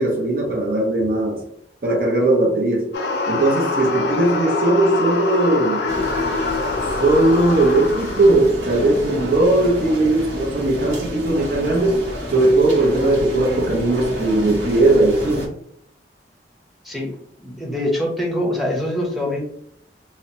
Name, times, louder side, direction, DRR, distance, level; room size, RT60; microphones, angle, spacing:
voice 1, 0.0-1.4 1.8-3.0 3.3-5.9 7.0-12.0 12.3-15.5, right 2 dB, 55° right, -2 dB, 0.6 m, -18 dB
sound 1, 2.9-8.4, left 3 dB, 75° left, 0.4 m, -24 dB
sound 2, 5.9-15.5, equal, 80° right, 0.9 m, -30 dB
voice 2, 16.8-17.2 17.4-19.4, left 1 dB, ahead, -3 dB, 0.6 m, -24 dB
2.7 x 2.0 x 2.7 m, 0.69 s
head